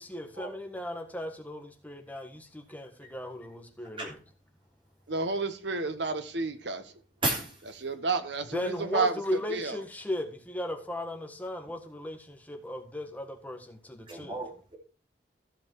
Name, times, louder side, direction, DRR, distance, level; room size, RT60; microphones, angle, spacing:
voice 1, 0.0-4.1 8.5-14.4, left 1 dB, 10° left, 1.5 m, -36 dB
voice 2, 5.1-6.8 7.8-9.1 9.5-9.8, right 3 dB, 75° right, 1.2 m, -30 dB
voice 3, 14.1-14.8, right 2 dB, 30° right, 3.3 m, -32 dB
14.5 x 5.5 x 4.7 m
head